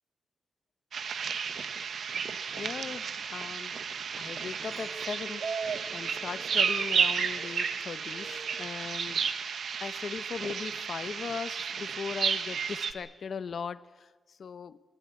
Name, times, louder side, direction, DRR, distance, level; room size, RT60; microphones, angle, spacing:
sound 1, 0.9-12.9, right 6 dB, 75° right, 1.2 m, -32 dB
voice 1, 2.6-3.8 4.1-9.4 9.8-14.8, left 6 dB, 60° left, 0.9 m, -39 dB
Chink clink, 4.7-9.1 9.5-10.0, right 2 dB, 30° right, 7.4 m, -52 dB
22.5 x 18.5 x 8.6 m
wide cardioid pair, 135°, 0 cm